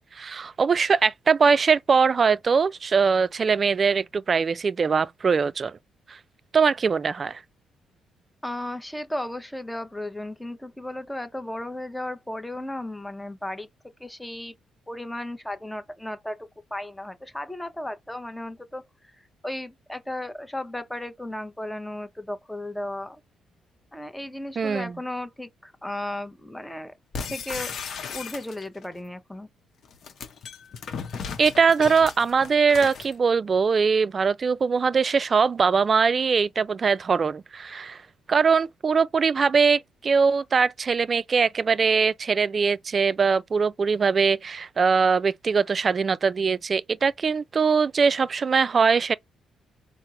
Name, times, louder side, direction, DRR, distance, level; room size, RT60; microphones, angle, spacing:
voice 1, 0.1-5.8 6.1-6.2 6.5-7.4 24.6-24.9 31.4-38.0 38.3-49.2, right 5 dB, 40° right, 0.3 m, -22 dB
voice 2, 8.4-13.7 14.0-14.5 14.9-23.2 23.9-26.9 27.3-27.7 28.1-29.5, left 1 dB, 5° left, 0.7 m, -35 dB
sound 1, 27.1-28.8 29.8-33.1, left 6 dB, 60° left, 0.7 m, -36 dB
4.4 x 2.0 x 3.7 m
cardioid pair, 90°, 0 cm